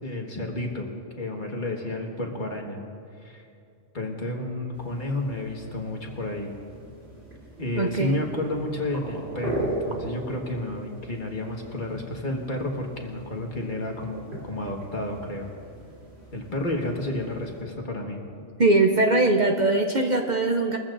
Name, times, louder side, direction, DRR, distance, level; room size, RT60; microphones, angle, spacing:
voice 1, 0.0-0.9 1.2-2.8 3.2-3.4 3.9-6.5 7.6-15.5 16.3-18.2, left 1 dB, 45° left, 0 dB, 1.7 m, -31 dB
sound 1, 4.7-17.6, right 1 dB, 65° right, 3.5 m, -39 dB
voice 2, 7.8-8.2 18.6-20.8, right 2 dB, 45° right, 3 dB, 0.7 m, -21 dB
22.5 x 14.5 x 2.6 m, 2.5 s
omnidirectional pair, 1.2 m